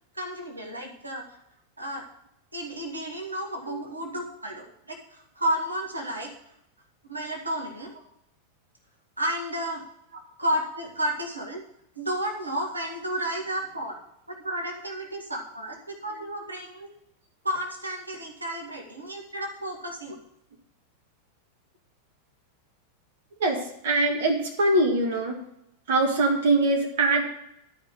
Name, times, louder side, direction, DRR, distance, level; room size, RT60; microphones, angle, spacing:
voice 1, 0.1-1.3 1.8-2.1 2.5-6.3 7.1-7.9 9.2-9.8 10.4-11.6 11.9-14.0 14.3-16.9 17.4-20.2, right 1 dB, 80° right, 1 dB, 1.7 m, -32 dB
voice 2, 23.8-25.4 25.9-27.2, right 2 dB, 55° right, 2 dB, 1.6 m, -22 dB
11.5 x 5.1 x 7.6 m, 0.79 s
figure-of-eight pair, 90°, 0 cm